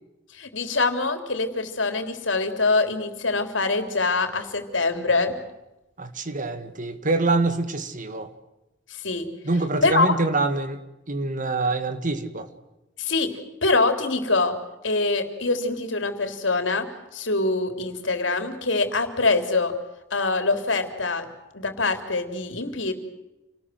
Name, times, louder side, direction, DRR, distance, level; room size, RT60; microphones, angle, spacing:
voice 1, 0.3-5.4 8.9-9.3 9.8-10.2 13.0-13.3 13.6-14.6 14.8-19.7 20.1-21.3 21.5-22.9, left 3 dB, 80° left, 7 dB, 3.6 m, -24 dB
voice 2, 6.0-8.3 9.4-10.8 11.1-12.5, right 3 dB, 45° right, 10 dB, 2.0 m, -25 dB
29.0 x 19.5 x 7.9 m, 0.97 s
head